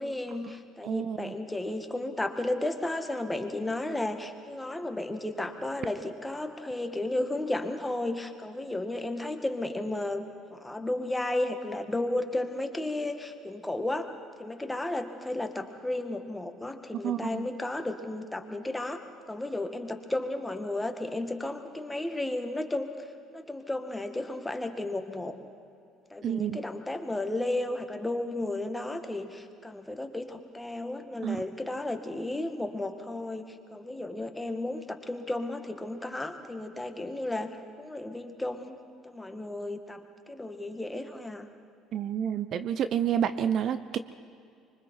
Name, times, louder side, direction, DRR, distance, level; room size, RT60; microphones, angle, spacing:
voice 1, 0.0-10.2 10.5-14.1 14.4-22.9 23.3-25.4 26.1-41.5, left 2 dB, 10° left, 6 dB, 2.0 m, -33 dB
voice 2, 0.8-1.3 17.0-17.5 26.2-26.6 31.2-31.4 41.9-44.0, right 9 dB, 55° right, 12 dB, 0.7 m, -29 dB
25.0 x 23.5 x 4.6 m, 2.4 s
hypercardioid pair, 55°, 0 cm